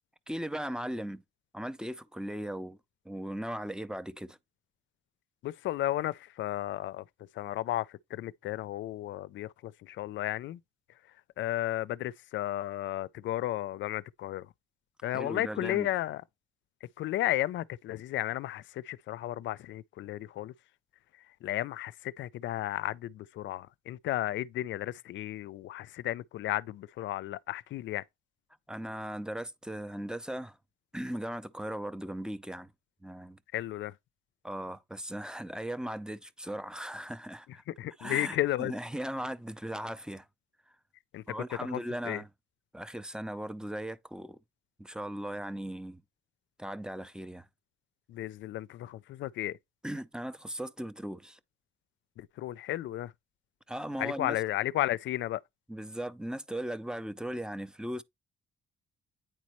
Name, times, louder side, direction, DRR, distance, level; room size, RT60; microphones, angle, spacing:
voice 1, 0.3-1.2 1.5-2.8 3.0-4.4 15.0-15.9 28.7-30.6 30.9-32.7 33.0-33.4 34.4-37.6 38.0-40.3 41.3-42.3 42.7-44.4 44.8-46.0 46.6-47.5 49.8-51.4 53.7-54.4 55.7-58.0, right 1 dB, 5° right, 0.5 m, -38 dB
voice 2, 5.4-7.0 7.3-10.6 11.4-14.5 15.0-16.2 17.0-20.5 21.4-28.0 33.5-33.9 37.7-38.7 41.1-41.2 41.7-41.8 42.0-42.2 48.1-49.6 52.2-53.1 54.0-55.4, left 14 dB, 70° left, 0.4 m, -33 dB
9.0 x 4.1 x 3.0 m
cardioid pair, 90°, 20 cm